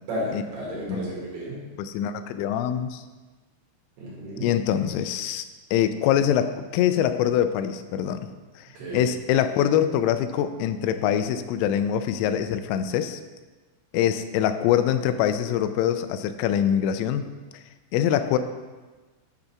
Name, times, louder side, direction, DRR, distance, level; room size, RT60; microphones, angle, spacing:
voice 1, 0.1-1.6 4.0-4.5 8.7-9.1, equal, 60° right, -6 dB, 3.7 m, -33 dB
voice 2, 1.8-3.0 4.4-8.3 8.6-13.2 13.9-17.2 17.5-17.6 17.9-18.4, left 10 dB, 90° left, 10 dB, 3.2 m, -24 dB
9.7 x 4.0 x 5.7 m, 1.3 s
omnidirectional pair, 5.7 m